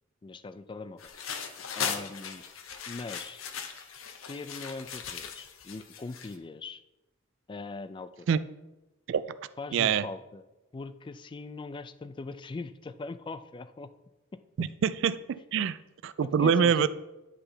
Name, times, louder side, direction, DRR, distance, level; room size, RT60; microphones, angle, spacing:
voice 1, 0.2-1.0 1.8-2.4 2.9-3.4 4.3-6.8 7.5-8.3 9.6-10.4 10.7-13.9 16.4-16.9, left 3 dB, 25° left, 13 dB, 0.3 m, -41 dB
sound 1, 1.0-6.4, left 6 dB, 85° left, 0.8 m, -38 dB
voice 2, 9.7-10.0 14.6-15.8 16.0-16.9, right 7 dB, 65° right, 15 dB, 0.3 m, -25 dB
10.0 x 3.4 x 5.5 m, 1.0 s
head